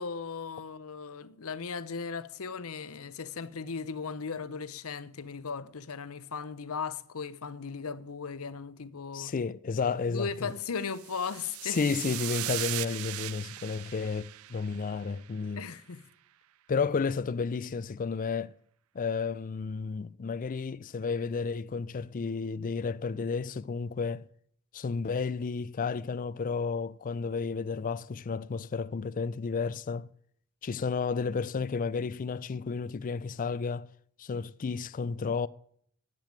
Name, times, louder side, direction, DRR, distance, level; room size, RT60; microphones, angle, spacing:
voice 1, 0.0-9.3 10.1-11.8 15.6-16.0, left 5 dB, 70° left, 0.7 m, -37 dB
voice 2, 9.1-10.6 11.6-15.6 16.7-18.5 18.9-24.3 24.7-30.1 30.6-33.9 34.2-35.5, left 5 dB, 35° left, 0.4 m, -32 dB
sound 1, 10.8-15.3, right 16 dB, 70° right, 0.4 m, -38 dB
10.5 x 7.6 x 8.9 m
head